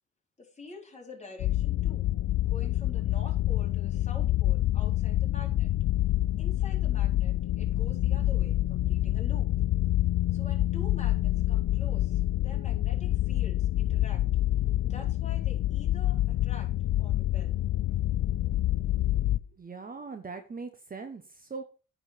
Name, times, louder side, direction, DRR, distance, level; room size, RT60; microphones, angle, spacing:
voice 1, 0.4-2.1 2.5-5.7 6.4-9.5 10.3-14.2 14.8-16.7 17.0-17.5, left 3 dB, 20° left, 0 dB, 4.1 m, -47 dB
sound 1, 1.4-19.4, left 14 dB, 65° left, 0.6 m, -27 dB
voice 2, 19.6-21.6, right 4 dB, 30° right, 7 dB, 1.2 m, -40 dB
9.7 x 4.9 x 6.7 m, 0.35 s
cardioid pair, 90°, 30 cm